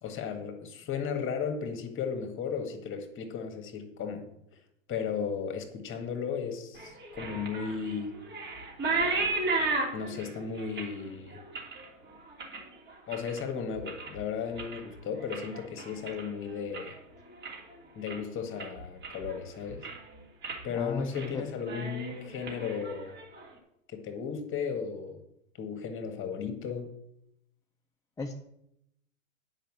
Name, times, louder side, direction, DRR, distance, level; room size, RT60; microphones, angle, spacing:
voice 1, 0.0-4.3 4.9-8.1 9.9-11.4 13.1-16.9 18.0-19.8 20.6-23.1 23.9-25.2 25.5-26.9, left 6 dB, 30° left, 5 dB, 1.9 m, -35 dB
sound 1, 6.8-13.4 13.8-14.2 14.5-17.0 17.3-17.7 18.1-18.2 18.6-19.4 19.7-20.1 20.4-20.6 21.0-21.3 21.6-23.5, right 3 dB, 25° right, 3.0 m, -35 dB
voice 2, 20.7-21.5 28.2-28.3, left 3 dB, 10° left, 2 dB, 0.6 m, -35 dB
9.0 x 5.6 x 7.4 m, 0.79 s
hypercardioid pair, 110°, 41 cm